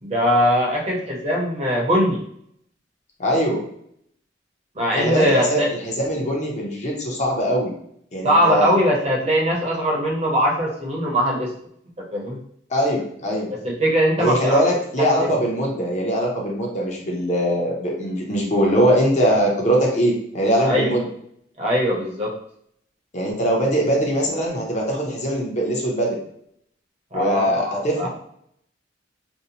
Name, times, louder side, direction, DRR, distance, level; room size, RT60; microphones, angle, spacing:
voice 1, 0.0-2.2 4.8-5.7 8.2-11.5 12.1-12.4 13.5-14.6 15.2-15.3 20.6-21.0 21.6-22.3 27.1-28.1, equal, 35° right, -2 dB, 0.7 m, -21 dB
voice 2, 3.2-3.6 4.9-7.8 8.1-8.7 12.7-13.5 14.2-21.0 23.1-26.2 27.1-28.1, equal, 40° left, -1 dB, 0.6 m, -21 dB
2.7 x 2.0 x 2.8 m, 0.68 s
head